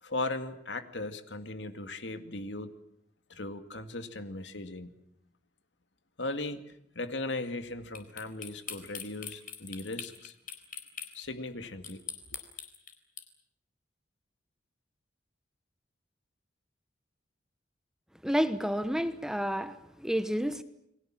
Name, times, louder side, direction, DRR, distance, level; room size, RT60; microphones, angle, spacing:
voice 1, 0.0-2.7 3.3-4.9 6.2-6.6 6.9-10.3 11.1-12.0 12.3-12.4, left 2 dB, 75° left, 2.1 m, -37 dB
sound 1, 7.9-11.1 11.8-13.2, left 8 dB, 50° left, 4.0 m, -41 dB
voice 2, 18.2-20.6, equal, 5° right, 1.1 m, -30 dB
29.5 x 21.5 x 7.6 m
head